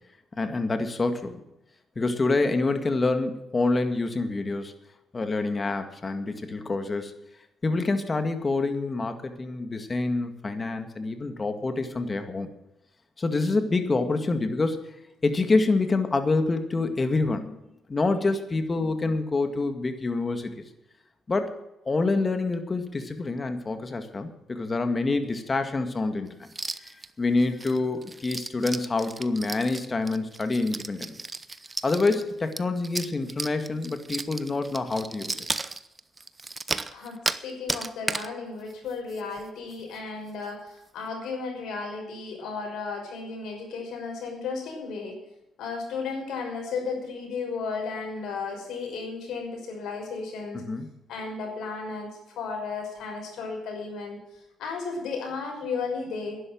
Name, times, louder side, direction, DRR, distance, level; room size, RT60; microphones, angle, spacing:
voice 1, 0.4-1.4 2.0-4.7 5.1-7.1 7.6-12.5 13.2-14.8 15.2-17.6 17.9-20.7 21.3-21.5 21.9-26.3 26.8-31.1 31.8-35.4 50.5-50.9, left 3 dB, 30° left, 8 dB, 2.0 m, -27 dB
sound 1, 26.5-27.1 27.4-37.4 37.7-38.3 38.7-38.8 39.1-39.4 39.7-39.8 40.3-40.5, right 3 dB, 25° right, 0.8 m, -34 dB
voice 2, 36.9-45.2 45.6-50.6 51.1-54.2 54.6-56.4, left 4 dB, 80° left, 1 dB, 5.8 m, -34 dB
11.0 x 11.0 x 7.8 m, 0.89 s
cardioid pair, 90°, 0 cm